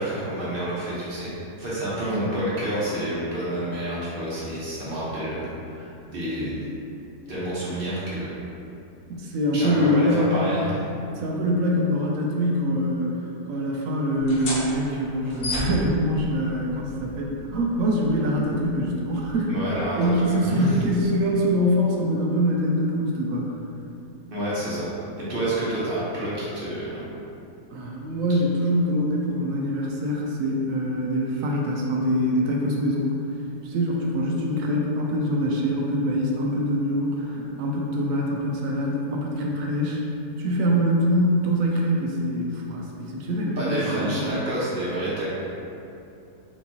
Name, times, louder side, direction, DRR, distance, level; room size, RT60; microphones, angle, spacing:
voice 1, 0.0-6.6 7.3-8.5 9.5-10.8 19.5-20.7 24.3-24.9 25.2-27.0 43.6-45.4, right 1 dB, 40° right, -8 dB, 1.0 m, -29 dB
voice 2, 9.1-10.3 11.2-13.1 13.5-19.5 20.0-23.5 27.7-33.1 33.6-40.0 40.4-44.3, equal, 70° right, -1 dB, 0.9 m, -24 dB
sound 1, 14.1-21.4, left 2 dB, 55° left, 0.6 m, -36 dB
4.4 x 3.5 x 2.7 m, 2.7 s
omnidirectional pair, 1.7 m